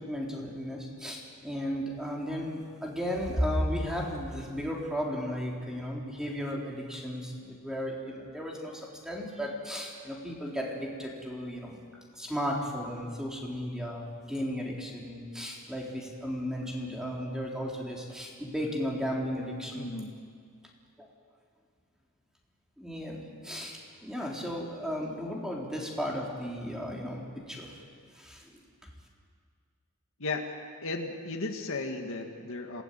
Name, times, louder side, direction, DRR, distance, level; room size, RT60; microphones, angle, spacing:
voice 1, 0.0-11.8 12.1-19.9 21.0-21.1 22.8-27.8 28.1-28.6, equal, 5° right, -2 dB, 3.7 m, -35 dB
voice 2, 19.8-20.2 30.2-30.5 30.8-32.8, left 3 dB, 65° left, 3 dB, 2.0 m, -35 dB
27.5 x 18.0 x 9.2 m, 2.1 s
head